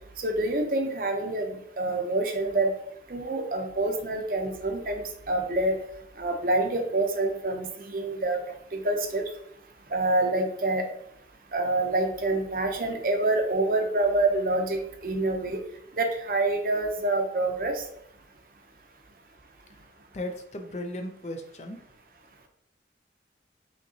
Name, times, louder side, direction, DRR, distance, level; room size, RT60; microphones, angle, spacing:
voice 1, 0.2-1.5 1.8-2.7 3.1-5.8 6.2-8.4 8.7-9.2 9.9-10.9 11.5-15.6 16.0-17.8, right 2 dB, 50° right, 4 dB, 0.6 m, -26 dB
voice 2, 20.1-21.9, left 1 dB, 40° left, 6 dB, 0.5 m, -36 dB
5.3 x 2.9 x 2.8 m, 0.73 s
head